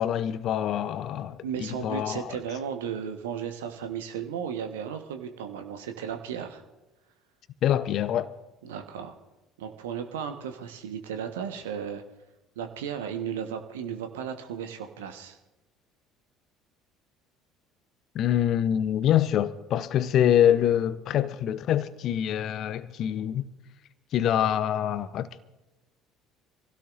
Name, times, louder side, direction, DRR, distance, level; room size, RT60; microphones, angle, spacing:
voice 1, 0.0-2.4 7.6-8.3 18.1-23.4 24.1-25.3, left 10 dB, 50° left, 0.7 m, -25 dB
voice 2, 1.4-6.6 8.6-9.1 9.6-12.0 12.5-15.4, right 8 dB, 70° right, 1.2 m, -35 dB
25.5 x 16.5 x 2.6 m
figure-of-eight pair, 60°, 0 cm